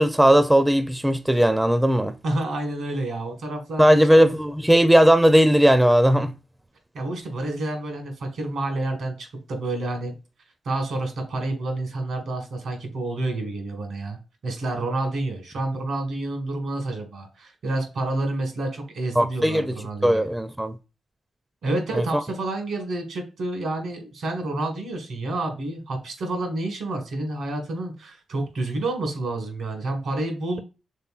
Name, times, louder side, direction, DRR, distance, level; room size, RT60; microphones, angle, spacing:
voice 1, 0.0-2.1 3.8-6.3 19.2-19.7 20.0-20.8 21.9-22.0, equal, 10° right, 0.5 m, -17 dB
voice 2, 2.2-4.1 6.9-10.1 10.6-14.2 14.4-20.2 21.6-30.6, right 2 dB, 75° right, 1.6 m, -29 dB
5.6 x 3.4 x 2.4 m
hypercardioid pair, 40°, 0 cm